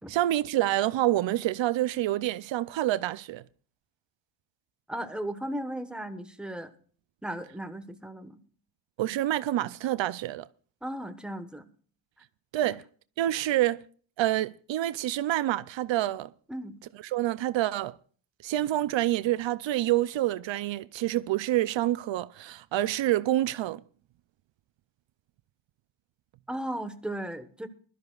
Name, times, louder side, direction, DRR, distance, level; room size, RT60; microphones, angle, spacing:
voice 1, 0.1-3.4 9.0-10.5 12.5-12.8 13.2-13.8 14.2-16.3 17.1-18.0 18.4-23.8, right 14 dB, 80° right, 0.6 m, -27 dB
voice 2, 4.9-6.7 7.2-8.4 10.8-11.7 12.6-12.8 16.5-16.8 26.5-27.7, right 1 dB, ahead, 1.2 m, -36 dB
22.5 x 12.5 x 2.4 m
cardioid pair, 95°, 44 cm